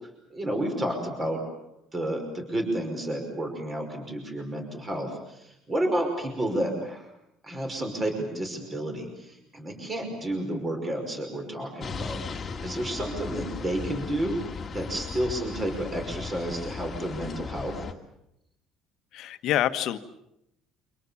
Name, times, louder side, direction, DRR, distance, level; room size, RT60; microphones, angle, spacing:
voice 1, 0.3-1.4 1.9-5.4 5.7-7.0 7.4-12.2 12.6-17.8, right 1 dB, 20° right, 4 dB, 5.6 m, -31 dB
sound 1, 11.8-17.9, left 5 dB, 25° left, 2.2 m, -37 dB
voice 2, 19.1-20.0, left 12 dB, 60° left, 10 dB, 1.5 m, -26 dB
28.5 x 26.0 x 7.2 m, 0.80 s
cardioid pair, 145°, 0 cm